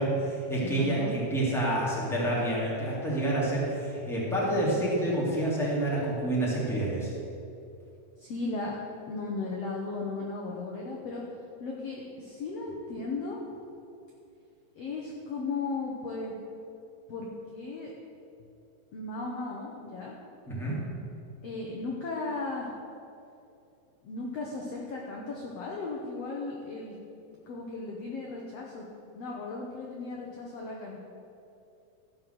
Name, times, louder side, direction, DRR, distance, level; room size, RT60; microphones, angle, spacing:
voice 1, 0.0-7.1 20.5-20.8, right 1 dB, ahead, -6 dB, 2.1 m, -28 dB
voice 2, 0.6-1.1 8.2-8.8 9.1-11.2 11.6-13.4 14.8-16.4 17.1-17.9 18.9-20.1 21.4-22.7 24.0-27.0 27.5-28.8 29.1-31.0, left 3 dB, 65° left, -2 dB, 1.7 m, -36 dB
14.5 x 5.8 x 6.7 m, 2.7 s
omnidirectional pair, 4.0 m